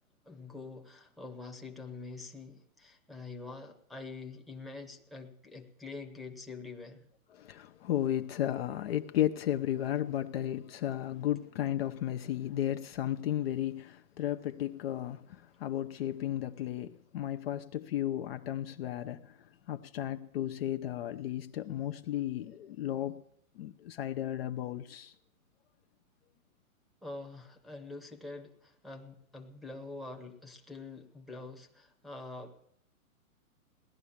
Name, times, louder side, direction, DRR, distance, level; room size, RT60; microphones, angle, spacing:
voice 1, 0.2-7.1 27.0-32.7, left 3 dB, ahead, 1.0 m, -45 dB
voice 2, 7.4-19.4 19.7-23.2 23.6-25.1, left 12 dB, 45° left, 0.7 m, -34 dB
17.5 x 11.5 x 7.2 m
hypercardioid pair, 140°, 44 cm